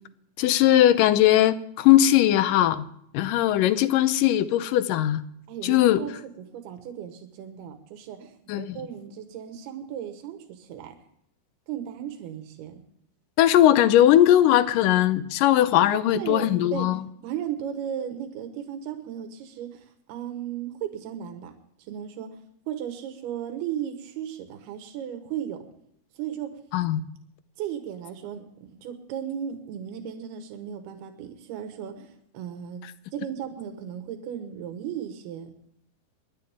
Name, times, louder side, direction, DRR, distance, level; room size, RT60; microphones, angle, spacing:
voice 1, 0.4-2.9 3.1-5.2 5.6-6.0 8.5-8.8 13.4-17.0 26.7-27.0, left 12 dB, 75° left, 13 dB, 2.1 m, -19 dB
voice 2, 5.5-11.0 11.7-12.8 15.9-16.9 17.2-21.5 21.9-22.3 22.7-25.6 26.2-26.5 27.6-32.8 33.1-35.5, right 9 dB, 85° right, 6 dB, 3.3 m, -35 dB
26.0 x 11.0 x 3.6 m, 0.70 s
omnidirectional pair, 4.4 m